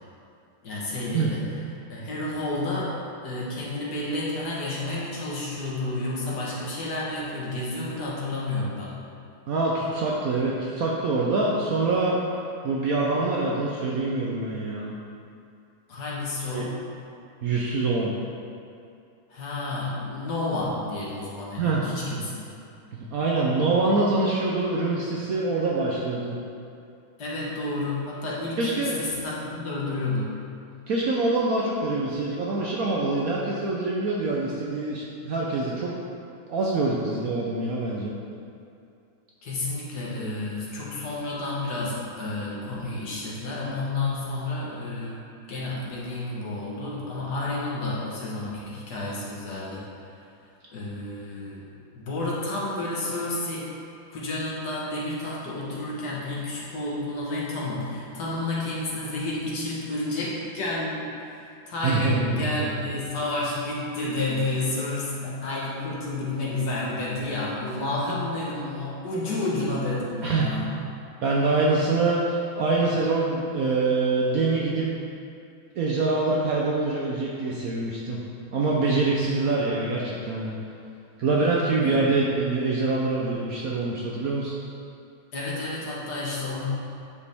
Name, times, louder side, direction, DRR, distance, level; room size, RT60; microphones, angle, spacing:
voice 1, 0.6-1.4 1.9-3.0 3.2-8.9 15.9-16.8 19.3-22.3 27.2-30.3 39.4-49.8 50.7-51.6 51.9-53.7 54.1-61.0 61.7-70.7 79.1-79.5 81.8-82.0 85.3-86.6, left 2 dB, 60° left, -6 dB, 1.8 m, -30 dB
voice 2, 9.5-12.2 12.6-14.9 16.5-16.7 17.4-18.1 21.6-21.8 22.9-26.4 28.6-29.0 30.9-35.9 36.5-38.1 61.8-62.5 70.2-70.5 71.2-74.9 75.8-78.2 78.5-80.5 81.2-84.6, right 3 dB, 65° right, -4 dB, 0.9 m, -25 dB
9.6 x 4.9 x 3.5 m, 2.5 s
omnidirectional pair, 2.1 m